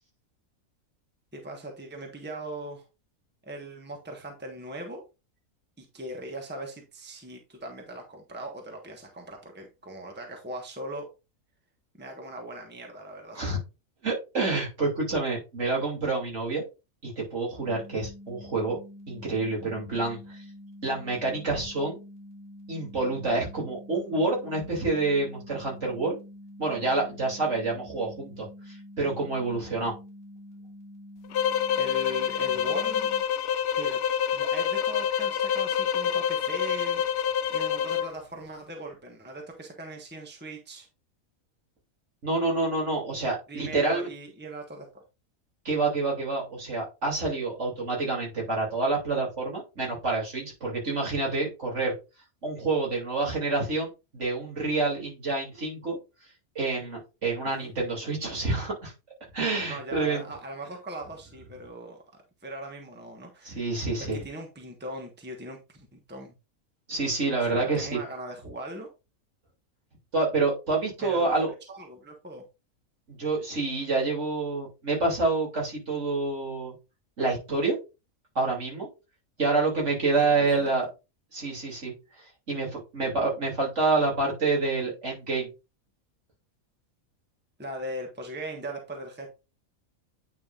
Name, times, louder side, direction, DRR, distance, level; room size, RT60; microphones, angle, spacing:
voice 1, 1.3-2.8 3.4-5.0 5.8-11.1 12.0-13.5 31.7-33.1 33.8-34.0 34.3-40.9 43.5-45.0 57.4-57.7 59.6-62.0 62.4-63.6 64.0-66.3 67.5-68.9 71.0-71.3 71.7-72.4 80.1-80.3 80.6-80.7 87.6-89.3, right 1 dB, 10° right, 2 dB, 1.3 m, -39 dB
voice 2, 14.0-16.6 17.0-18.8 19.1-20.4 20.8-22.0 22.7-26.2 26.6-29.9 42.2-44.1 45.6-51.9 52.4-56.0 56.5-58.9 59.3-60.2 63.4-64.2 66.9-68.0 70.1-71.5 73.1-76.7 77.2-77.8 78.3-78.9 79.4-80.9 81.3-81.9 82.5-85.5, right 3 dB, 55° right, -2 dB, 3.3 m, -28 dB
sound 1, 17.7-33.2, left 1 dB, 35° right, 3.4 m, -47 dB
sound 2, 31.3-38.1, left 9 dB, 65° left, 0.7 m, -27 dB
9.3 x 5.3 x 2.5 m, 0.27 s
omnidirectional pair, 1.5 m